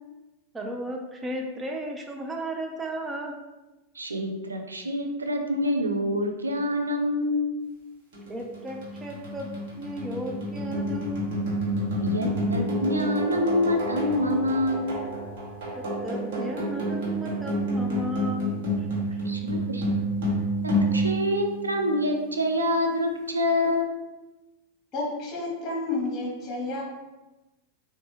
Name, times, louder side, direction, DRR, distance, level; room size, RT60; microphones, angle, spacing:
voice 1, 0.5-3.4 8.3-9.5 9.8-11.3 16.0-18.6, equal, 15° right, 1 dB, 0.4 m, -34 dB
voice 2, 3.9-7.6 12.0-15.1 19.2-20.0 20.6-23.9, left 1 dB, 80° right, 4 dB, 0.4 m, -26 dB
sound 1, 8.1-22.3, equal, 55° right, 1.0 m, -29 dB
voice 3, 24.9-26.8, left 2 dB, 30° left, -2 dB, 1.0 m, -30 dB
4.0 x 2.1 x 3.1 m, 1.1 s
figure-of-eight pair, 90°, 0 cm